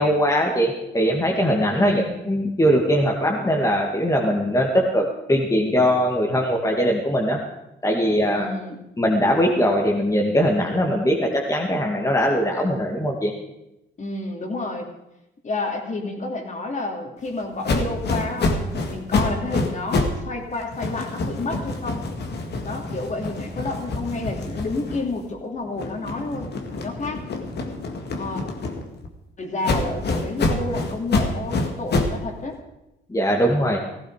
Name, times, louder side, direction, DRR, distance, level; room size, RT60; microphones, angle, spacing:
voice 1, 0.0-7.4 7.8-8.5 9.0-13.3 33.1-33.8, equal, 15° left, 0 dB, 1.9 m, -21 dB
voice 2, 1.7-2.0 8.3-8.8 14.0-14.9 15.4-18.6 18.9-22.0 22.6-26.5 26.8-27.2 28.2-28.4 29.4-32.6, left 2 dB, 35° left, 3 dB, 3.1 m, -30 dB
sound 1, 17.6-20.2 20.5-25.3 25.7-29.1 29.6-32.2, left 2 dB, 55° left, 2.0 m, -27 dB
16.0 x 15.0 x 4.9 m, 0.92 s
cardioid pair, 90°, 20 cm